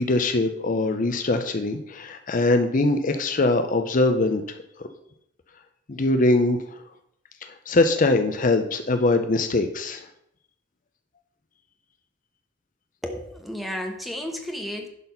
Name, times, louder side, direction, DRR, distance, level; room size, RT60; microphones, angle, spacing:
voice 1, 0.0-4.4 5.9-6.6 7.4-10.0, left 2 dB, 45° left, 7 dB, 0.6 m, -22 dB
voice 2, 13.0-14.9, left 1 dB, ahead, 3 dB, 1.1 m, -32 dB
11.0 x 4.1 x 5.6 m, 0.74 s
head